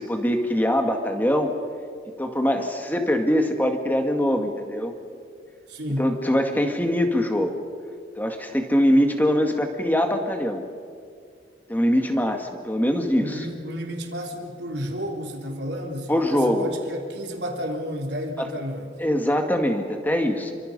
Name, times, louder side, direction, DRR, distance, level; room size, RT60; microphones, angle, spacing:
voice 1, 0.0-1.5 2.2-4.9 6.0-7.6 8.2-10.6 11.7-13.4 16.1-16.7 18.4-18.5 19.0-20.5, equal, 10° left, 4 dB, 2.1 m, -23 dB
voice 2, 5.7-6.1 13.2-18.9, equal, 70° right, 1 dB, 3.7 m, -31 dB
29.0 x 25.0 x 5.5 m, 2.2 s
head